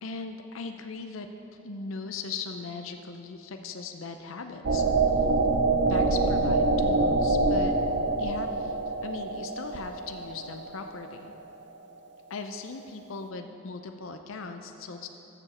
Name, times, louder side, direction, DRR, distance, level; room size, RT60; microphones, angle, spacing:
voice 1, 0.0-1.3 1.6-4.8 5.8-7.8 8.2-11.3 12.3-15.1, left 4 dB, 80° left, 6 dB, 0.6 m, -39 dB
sound 1, 4.6-11.3, right 3 dB, 60° right, 0.6 m, -25 dB
13.5 x 7.1 x 4.2 m, 2.9 s
head